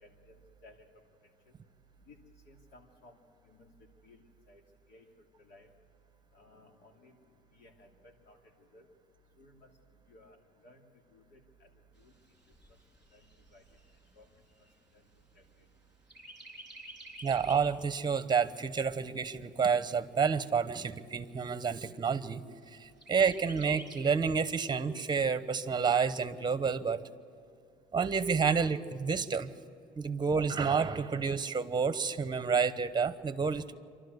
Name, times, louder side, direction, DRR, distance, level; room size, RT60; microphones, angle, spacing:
voice 1, 0.0-0.4 0.6-0.8 2.1-2.2 2.5-3.1 3.5-3.7 4.0-4.2 4.5-4.6 4.9-5.0 5.4-5.7 6.3-7.1 7.6-7.9 8.3-8.4 8.7-8.8 9.4-9.7 10.1-10.4 10.6-10.8 11.1-11.4 12.0-12.1 13.1-13.2 13.5-13.6 14.2-14.3, left 2 dB, 75° left, 2 dB, 3.0 m, -57 dB
Chirp tweet, 12.0-15.7 16.1-17.8 18.2-18.3 18.6-19.6 20.2-20.3 20.7-20.8 21.2-21.7 23.0-24.1, right 1 dB, 5° right, 4.0 m, -51 dB
voice 2, 17.2-22.4 22.7-27.1 27.9-29.5 30.0-33.7, right 6 dB, 25° right, 12 dB, 1.0 m, -29 dB
27.5 x 12.5 x 8.1 m, 2.5 s
cardioid pair, 110°, 17 cm